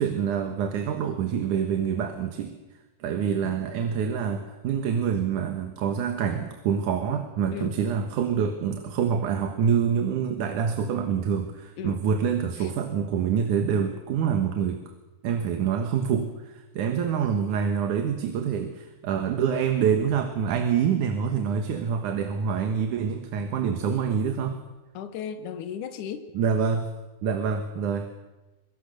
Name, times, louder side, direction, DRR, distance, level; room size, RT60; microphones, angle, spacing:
voice 1, 0.0-2.6 3.0-14.8 15.2-24.6 26.3-26.9 27.2-28.1, right 7 dB, 80° right, 6 dB, 2.9 m, -26 dB
voice 2, 24.9-26.3, left 8 dB, 80° left, 9 dB, 2.6 m, -36 dB
23.5 x 23.0 x 6.7 m, 1.1 s
omnidirectional pair, 3.5 m